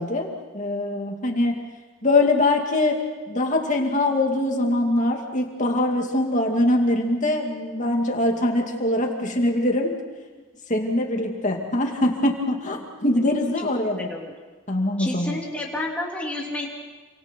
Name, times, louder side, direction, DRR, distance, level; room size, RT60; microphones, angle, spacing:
voice 1, 0.0-1.6 2.0-3.0 3.3-10.0 10.7-14.1 14.7-15.4, left 1 dB, 35° left, 2 dB, 2.4 m, -23 dB
voice 2, 13.6-14.3 15.0-16.7, left 1 dB, 5° left, -2 dB, 3.2 m, -31 dB
28.5 x 25.0 x 4.6 m, 1.3 s
head